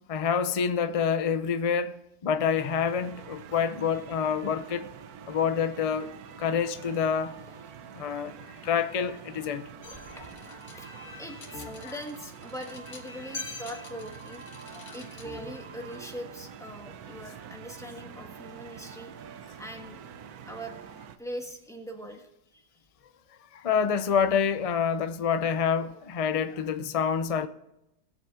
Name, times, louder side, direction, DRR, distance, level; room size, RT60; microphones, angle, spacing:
voice 1, 0.1-4.9 5.3-6.1 6.4-7.4 7.9-8.3 8.6-9.6 11.8-11.9 23.5-27.5, left 7 dB, 60° left, 0.3 m, -27 dB
sound 1, 2.6-21.2, right 8 dB, 90° right, 1.2 m, -46 dB
sound 2, 9.8-16.0, left 3 dB, 80° left, 2.1 m, -44 dB
voice 2, 9.9-10.9 11.2-14.4 14.9-19.1 19.6-20.0 20.5-20.7 21.2-22.7, equal, ahead, 1.3 m, -42 dB
18.5 x 7.0 x 3.7 m
omnidirectional pair, 1.6 m